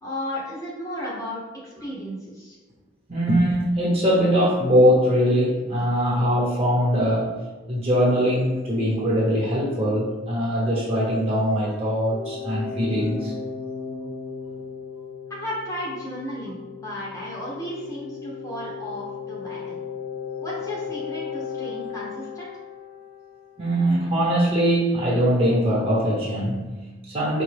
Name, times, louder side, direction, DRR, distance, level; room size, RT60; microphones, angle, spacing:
voice 1, 0.0-2.6 15.3-19.8 20.4-22.5, equal, 15° left, -5 dB, 0.7 m, -34 dB
voice 2, 3.1-7.4 7.7-13.3 23.6-27.4, equal, 30° right, -5 dB, 1.1 m, -21 dB
sound 1, 12.1-23.7, left 6 dB, 80° left, 0.5 m, -36 dB
5.1 x 2.3 x 3.2 m, 1.2 s
head